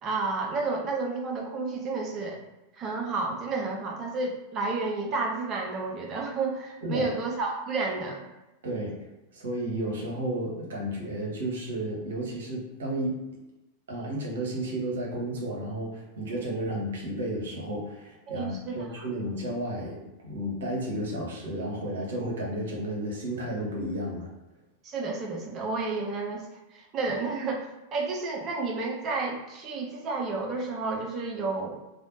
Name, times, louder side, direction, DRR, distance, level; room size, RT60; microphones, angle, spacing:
voice 1, 0.0-2.4 2.8-8.2 18.3-19.1 24.8-31.8, right 3 dB, 30° right, 1 dB, 0.6 m, -31 dB
voice 2, 8.6-13.2 13.9-24.3, right 1 dB, 60° right, -2 dB, 0.9 m, -32 dB
3.3 x 2.3 x 2.5 m, 1.0 s
figure-of-eight pair, 90°, 0 cm